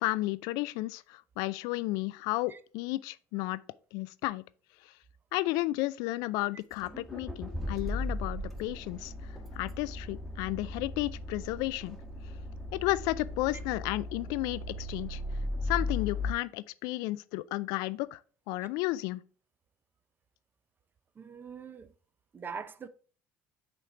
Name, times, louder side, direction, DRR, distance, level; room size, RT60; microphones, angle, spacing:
voice 1, 0.0-3.6 3.9-4.4 5.3-9.1 9.5-12.0 12.7-15.2 15.6-18.2 18.5-19.2, left 19 dB, 70° left, 0.3 m, -33 dB
Accelerating revving vroom, 6.7-16.3, left 2 dB, ahead, 1.3 m, -37 dB
voice 2, 21.2-21.9 22.3-22.9, right 5 dB, 30° right, 0.6 m, -42 dB
8.4 x 3.2 x 3.7 m
hypercardioid pair, 75°, 7 cm